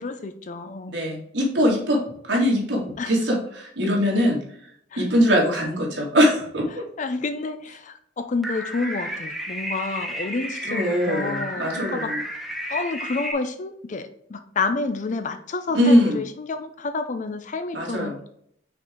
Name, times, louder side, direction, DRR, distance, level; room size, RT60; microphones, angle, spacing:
voice 1, 0.0-1.1 3.0-3.1 4.9-5.0 7.0-12.1 12.7-18.2, left 3 dB, 45° left, 9 dB, 0.5 m, -29 dB
voice 2, 0.9-4.4 5.0-6.8 10.7-12.2 15.7-16.2 17.7-18.2, equal, 75° right, -2 dB, 2.2 m, -22 dB
sound 1, 8.4-13.3, equal, ahead, 0.9 m, -32 dB
5.9 x 4.4 x 3.8 m, 0.69 s
head